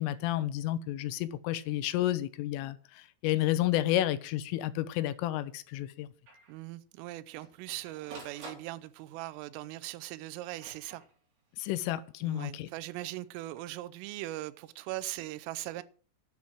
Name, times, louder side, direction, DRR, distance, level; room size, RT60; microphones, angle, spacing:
voice 1, 0.0-6.1 11.6-12.7, left 14 dB, 85° left, 3.2 m, -31 dB
Printer, 4.6-4.7 5.0-5.1 5.5-5.6 6.3-6.5 7.1-9.2 10.0-11.5 13.2-13.6, right 3 dB, 50° right, 5.5 m, -51 dB
voice 2, 6.5-11.0 12.2-15.8, right 16 dB, 85° right, 3.3 m, -40 dB
10.5 x 7.2 x 7.7 m
omnidirectional pair, 5.7 m